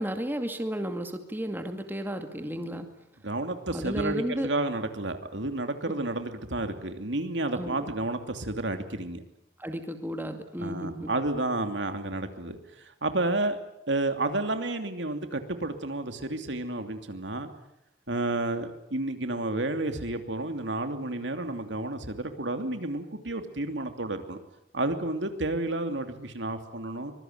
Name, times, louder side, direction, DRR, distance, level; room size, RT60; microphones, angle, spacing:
voice 1, 0.0-2.9 3.7-4.5 7.5-7.8 9.6-11.2, equal, 10° right, 6 dB, 2.2 m, -33 dB
voice 2, 3.2-9.2 10.6-13.6 13.9-17.5 18.1-24.4 24.7-27.1, right 2 dB, 90° right, 7 dB, 2.8 m, -31 dB
24.5 x 21.5 x 9.4 m, 0.82 s
head